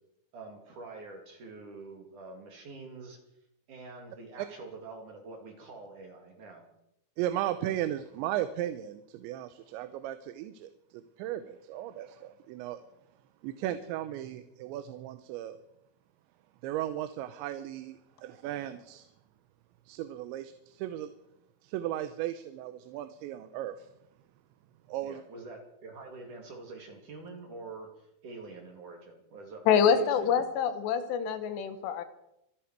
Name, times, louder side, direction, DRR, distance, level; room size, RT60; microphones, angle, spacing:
voice 1, 0.3-3.2 3.7-6.7 25.0-30.5, right 3 dB, 50° right, 2 dB, 3.3 m, -46 dB
voice 2, 7.2-12.8 13.4-15.6 16.6-19.1 19.9-21.1 21.6-23.9 24.9-25.2, right 12 dB, 85° right, 10 dB, 3.1 m, -36 dB
voice 3, 29.7-32.0, left 7 dB, 75° left, 10 dB, 3.2 m, -26 dB
26.0 x 11.0 x 4.7 m, 0.82 s
omnidirectional pair, 5.2 m